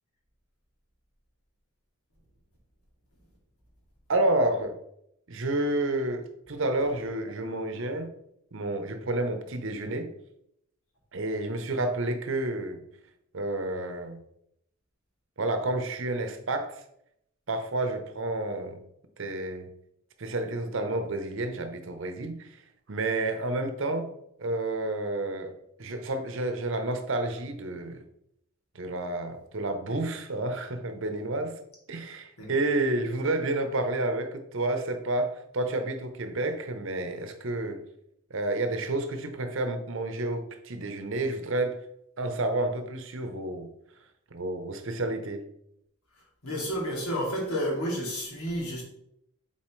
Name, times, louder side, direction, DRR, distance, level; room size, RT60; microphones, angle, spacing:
voice 1, 4.1-4.8 5.3-8.1 8.5-10.1 11.1-12.8 13.3-14.2 15.4-16.8 17.5-18.8 19.2-19.7 20.2-22.5 22.9-24.1 24.4-28.0 28.7-31.6 31.9-37.8 38.3-41.8 42.2-43.7 44.3-45.5, right 2 dB, 60° right, 0.8 m, -30 dB
voice 2, 46.4-48.8, equal, 85° left, 2.3 m, -30 dB
7.4 x 4.1 x 3.1 m
head